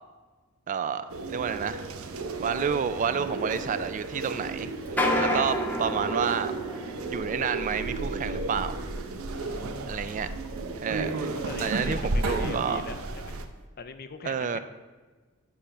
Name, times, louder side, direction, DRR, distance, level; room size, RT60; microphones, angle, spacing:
voice 1, 0.7-1.9 2.4-4.7 5.2-6.5 7.1-8.8 9.9-10.3 10.8-12.8 14.3-14.6, right 7 dB, 35° right, 12 dB, 0.3 m, -30 dB
sound 1, 1.1-13.4, right 2 dB, 80° right, 0.6 m, -33 dB
sound 2, 1.5-1.6 2.0-2.1 2.7-2.9 3.6-3.8 4.8-11.1 11.7-11.9 12.1-12.2 12.7-12.8 13.4-13.5, left 1 dB, 10° left, 0.7 m, -33 dB
voice 2, 9.3-9.9 11.4-13.4 13.8-14.6, left 4 dB, 45° left, 10 dB, 0.5 m, -41 dB
9.8 x 3.4 x 5.7 m, 1.3 s
head